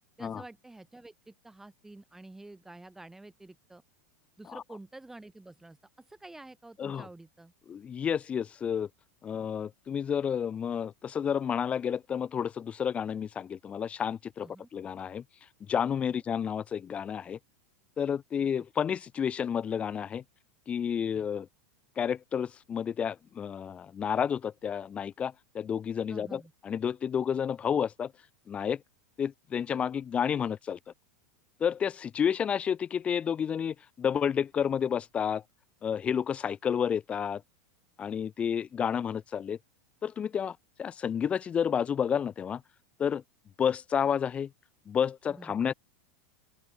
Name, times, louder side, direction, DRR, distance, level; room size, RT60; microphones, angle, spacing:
voice 1, 0.2-3.8 4.4-7.5 14.4-14.7 16.1-16.2 26.1-26.5 45.3-45.7, right 2 dB, 5° right, 1.7 m, -49 dB
voice 2, 7.7-8.9 9.2-15.2 15.7-17.4 18.0-20.2 20.7-21.5 22.0-28.1 28.5-28.8 29.2-30.8 31.6-35.4 35.8-37.4 38.0-39.6 40.0-42.6 43.0-43.2 43.6-44.5 44.9-45.7, left 8 dB, 15° left, 0.4 m, -30 dB
open air
supercardioid pair, 160°, 8 cm